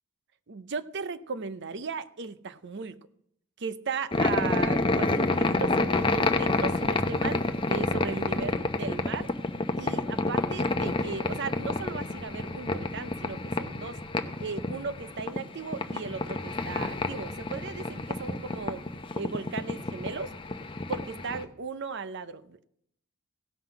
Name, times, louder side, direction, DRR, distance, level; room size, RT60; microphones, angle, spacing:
voice 1, 0.5-3.0 3.6-9.3 9.8-14.0 14.4-18.8 19.1-20.3 20.9-22.7, right 4 dB, 55° right, 0.7 m, -36 dB
sound 1, 4.1-21.4, left 2 dB, 25° left, 0.8 m, -29 dB
17.0 x 5.8 x 5.7 m
head